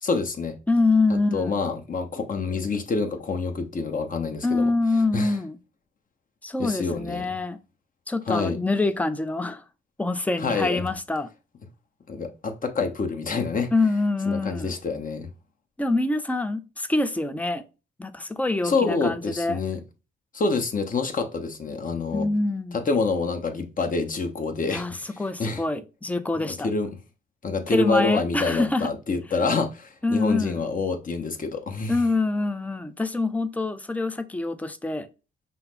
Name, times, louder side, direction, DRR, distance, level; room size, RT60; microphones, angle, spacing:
voice 1, 0.0-0.6 1.1-4.7 5.1-5.4 6.6-7.4 8.3-8.6 10.4-10.8 12.1-13.7 14.2-15.3 18.6-19.8 20.3-22.3 22.7-25.6 26.4-26.9 27.4-32.0, left 4 dB, 40° left, 1.0 m, -27 dB
voice 2, 0.7-1.6 4.4-5.6 6.4-7.6 8.1-9.6 10.0-11.3 13.7-14.7 15.8-17.7 18.0-19.6 22.1-22.8 24.7-26.7 27.7-28.9 30.0-30.6 31.9-35.1, left 2 dB, 5° left, 0.5 m, -25 dB
5.6 x 2.1 x 4.0 m
cardioid pair, 75°, 21 cm